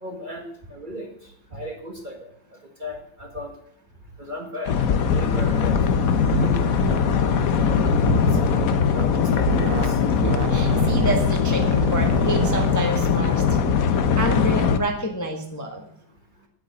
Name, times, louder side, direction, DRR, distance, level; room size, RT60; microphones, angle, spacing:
voice 1, 0.0-2.3 2.8-3.5 4.2-5.9 6.3-6.8 7.4-8.6 8.9-10.0, left 1 dB, 25° right, 2 dB, 1.6 m, -36 dB
sound 1, 4.7-14.8, left 6 dB, 55° left, 1.2 m, -21 dB
voice 2, 5.1-5.5 10.2-13.6 14.2-15.9, right 1 dB, 10° left, 2 dB, 1.3 m, -28 dB
sound 2, 6.3-6.5 6.8-7.0 8.1-8.8 9.5-9.9 10.2-12.7, right 8 dB, 65° right, 0.9 m, -29 dB
9.7 x 9.1 x 7.5 m, 0.68 s
omnidirectional pair, 2.1 m